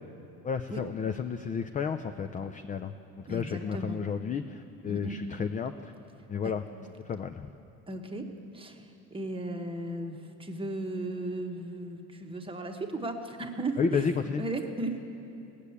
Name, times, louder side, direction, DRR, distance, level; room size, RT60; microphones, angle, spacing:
voice 1, 0.4-2.9 3.3-5.9 6.3-6.6 7.1-7.5 13.8-14.4, left 6 dB, 20° left, 8 dB, 0.3 m, -32 dB
voice 2, 3.3-4.0 4.8-5.2 6.4-6.5 7.9-8.3 8.5-14.1 14.4-15.0, right 2 dB, 15° right, 4 dB, 1.1 m, -36 dB
17.5 x 6.8 x 8.4 m, 2.8 s
cardioid pair, 105°, 38 cm